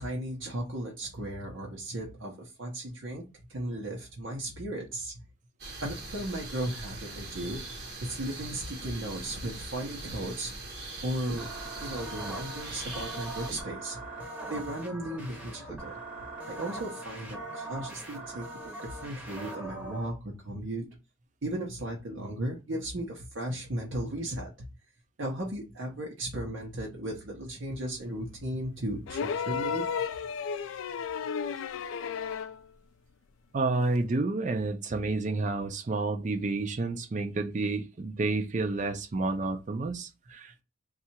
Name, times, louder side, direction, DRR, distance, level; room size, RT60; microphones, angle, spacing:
voice 1, 0.0-3.2 3.5-5.2 5.8-10.5 11.0-11.5 11.8-14.0 14.5-16.0 16.5-20.9 21.4-24.5 25.2-29.9, right 1 dB, 70° right, 0.8 m, -36 dB
sound 1, 5.6-13.6, right 2 dB, 50° right, 1.1 m, -42 dB
sound 2, 11.3-20.1, right 2 dB, 10° right, 0.7 m, -41 dB
sound 3, 29.1-32.6 34.0-34.1, left 6 dB, 80° left, 0.3 m, -33 dB
voice 2, 33.5-40.6, right 3 dB, 35° right, 0.4 m, -30 dB
2.8 x 2.4 x 4.2 m
head